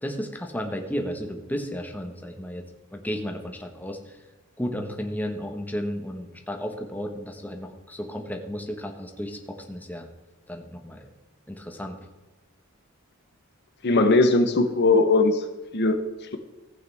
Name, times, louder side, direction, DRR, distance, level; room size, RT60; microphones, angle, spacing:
voice 1, 0.0-2.6 2.9-4.2 4.6-10.1 10.5-11.1 11.5-12.1, equal, 10° left, 3 dB, 1.2 m, -33 dB
voice 2, 13.8-15.4 15.7-16.0, left 3 dB, 50° left, 7 dB, 0.9 m, -19 dB
15.0 x 8.8 x 3.5 m, 1.1 s
head